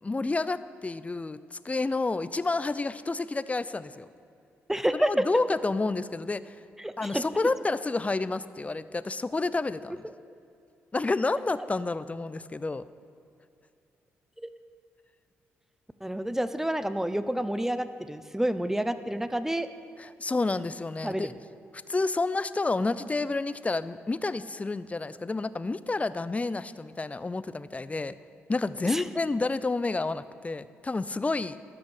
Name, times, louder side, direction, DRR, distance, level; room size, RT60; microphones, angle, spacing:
voice 1, 0.0-4.1 4.9-6.6 7.0-10.0 10.9-12.8 20.0-21.3 21.9-28.1 28.5-31.6, left 3 dB, 25° left, 15 dB, 0.5 m, -29 dB
voice 2, 4.7-5.2 6.8-7.2 14.4-14.5 16.0-19.7 21.0-21.3 28.8-29.0, right 1 dB, 5° right, 12 dB, 0.7 m, -29 dB
13.0 x 6.0 x 6.6 m, 2.5 s
hypercardioid pair, 45°, 6 cm